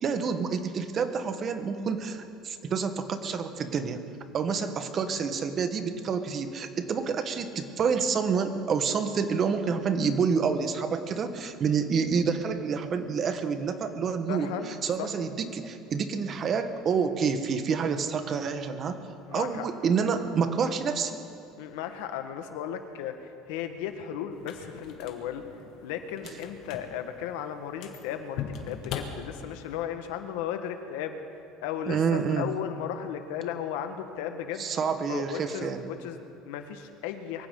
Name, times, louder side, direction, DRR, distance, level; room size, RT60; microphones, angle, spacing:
voice 1, 0.0-4.0 4.3-19.0 19.3-21.2 31.9-32.5 34.6-35.9, right 6 dB, 40° right, 8 dB, 1.3 m, -28 dB
voice 2, 14.3-15.1 19.3-19.6 21.6-25.5 25.8-31.2 31.6-34.6 35.1-37.5, left 9 dB, 85° left, 7 dB, 1.4 m, -35 dB
sound 1, 24.3-29.8, left 7 dB, 65° left, 1.8 m, -41 dB
23.5 x 15.5 x 3.8 m, 2.6 s
cardioid pair, 125°, 0 cm